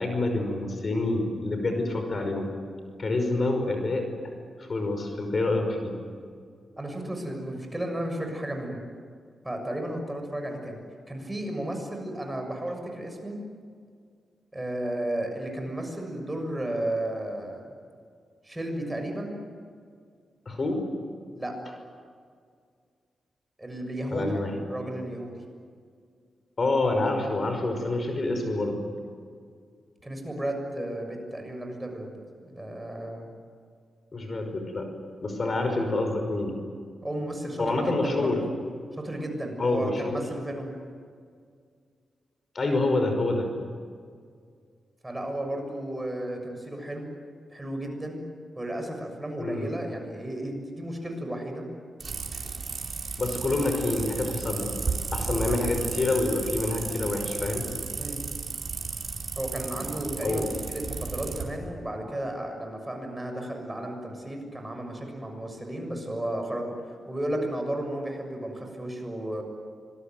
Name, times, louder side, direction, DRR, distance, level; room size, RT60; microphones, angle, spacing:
voice 1, 0.0-2.5 3.0-4.0 4.6-6.0 20.5-20.9 24.1-24.5 26.6-28.8 34.1-34.9 35.2-36.6 37.6-38.4 39.6-40.2 42.5-43.5 49.4-49.7 53.2-54.7 55.1-57.7 60.2-60.5, left 2 dB, 45° left, 5 dB, 5.5 m, -27 dB
voice 2, 6.8-8.8 9.4-10.8 11.1-13.4 14.5-17.7 18.4-19.3 21.4-21.6 23.6-24.4 24.7-25.4 30.0-32.1 32.4-33.3 37.0-38.3 38.9-40.7 45.0-47.1 47.5-48.2 48.5-51.6 58.0-58.2 59.3-69.4, right 1 dB, 15° right, 3 dB, 6.7 m, -33 dB
sound 1, 52.0-61.4, right 4 dB, 50° right, 4.7 m, -34 dB
25.5 x 22.0 x 9.3 m, 2.1 s
cardioid pair, 80°, 0 cm